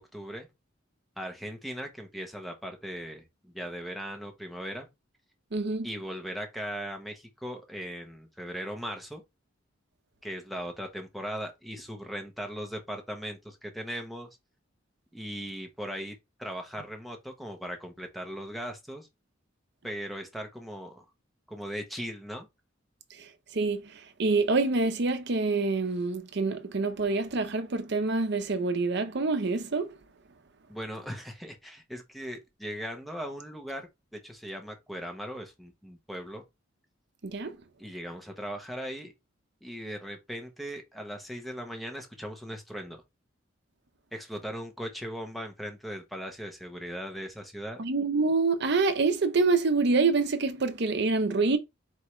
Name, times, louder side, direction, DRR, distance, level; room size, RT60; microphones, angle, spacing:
voice 1, 0.1-0.5 1.2-4.9 5.8-9.2 10.2-14.3 15.1-19.1 19.8-21.0 21.5-22.5 30.7-36.4 37.8-39.1 39.6-43.0 44.1-47.8, equal, ahead, 0.9 m, -38 dB
voice 2, 5.5-5.9 23.1-30.0 37.2-37.6 47.8-51.6, right 3 dB, 60° right, 0.7 m, -26 dB
4.5 x 3.5 x 3.1 m
head